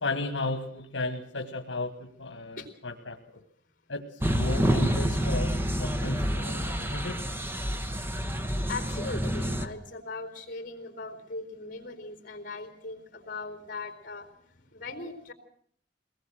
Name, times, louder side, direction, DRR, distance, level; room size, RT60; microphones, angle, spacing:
voice 1, 0.0-1.9 2.2-2.6 3.1-3.2 3.9-5.5 5.8-7.2, left 2 dB, 80° left, 7 dB, 1.6 m, -34 dB
sound 1, 4.2-9.7, equal, 10° right, 1.1 m, -28 dB
voice 2, 8.7-14.3 14.7-15.3, left 3 dB, 50° left, 6 dB, 4.1 m, -39 dB
23.5 x 19.0 x 7.8 m, 0.65 s
head